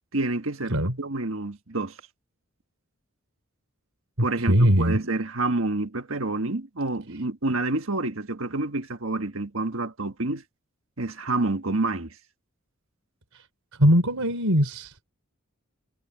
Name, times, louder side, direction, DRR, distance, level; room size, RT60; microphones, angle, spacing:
voice 1, 0.1-1.9 4.2-10.4 11.0-12.1, right 2 dB, 65° right, 1.6 m, -28 dB
voice 2, 4.5-5.0 13.8-15.1, equal, 85° right, 3.8 m, -20 dB
head